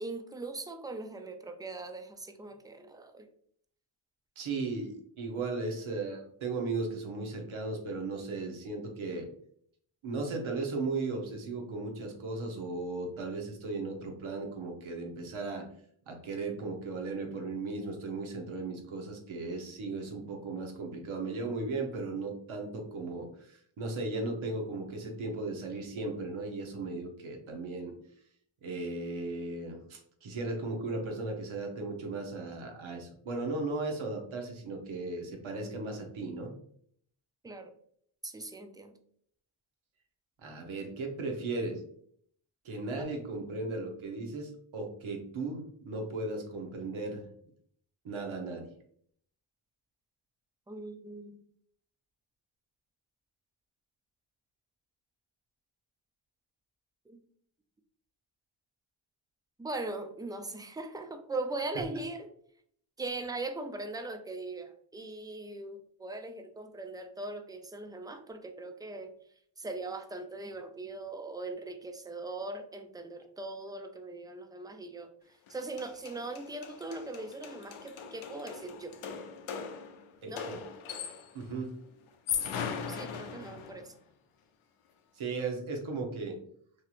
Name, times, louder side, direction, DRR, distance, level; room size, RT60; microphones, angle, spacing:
voice 1, 0.0-3.3 37.4-37.7 38.2-39.0 50.7-51.4 57.1-57.2 59.6-62.3 63.0-69.1 69.6-79.0 80.3-80.4 82.9-83.9, right 2 dB, 10° right, 6 dB, 0.3 m, -40 dB
voice 2, 4.4-9.3 10.0-15.7 16.1-27.9 28.6-36.5 40.4-41.8 42.6-47.2 48.0-48.7 61.7-61.8 80.2-80.6 81.3-81.7 85.1-86.4, right 3 dB, 70° right, 2 dB, 1.0 m, -36 dB
sound 1, 75.5-75.6 75.8-81.4 82.1-83.9, left 7 dB, 75° left, 0.6 m, -39 dB
3.2 x 2.8 x 2.4 m, 0.63 s
cardioid pair, 55°, 50 cm